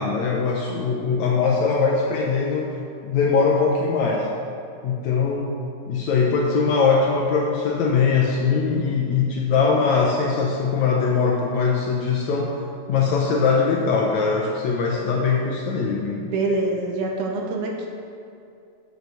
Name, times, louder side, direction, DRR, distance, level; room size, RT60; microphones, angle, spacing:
voice 1, 0.0-2.7 3.0-4.3 4.8-5.5 5.9-12.5 12.9-16.2, left 5 dB, 70° left, -2 dB, 1.8 m, -21 dB
voice 2, 16.1-17.9, right 2 dB, 75° right, 1 dB, 2.2 m, -25 dB
6.7 x 6.3 x 6.9 m, 2.5 s
omnidirectional pair, 3.9 m